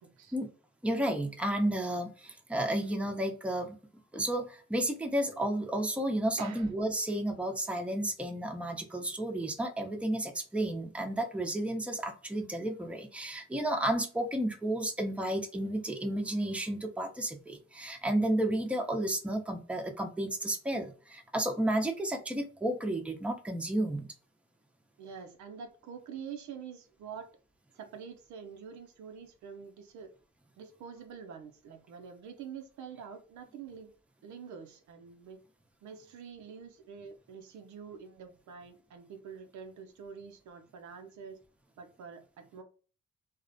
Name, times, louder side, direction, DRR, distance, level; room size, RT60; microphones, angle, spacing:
voice 1, 0.0-0.3 6.4-6.7 25.0-27.3 27.7-30.1 30.6-33.9 34.2-35.4 35.8-41.4 41.8-42.6, right 6 dB, 75° right, 6 dB, 0.5 m, -46 dB
voice 2, 0.8-3.8 4.1-24.1, right 1 dB, 5° right, 4 dB, 0.5 m, -32 dB
2.4 x 2.0 x 2.5 m, 0.38 s
supercardioid pair, 45°, 29 cm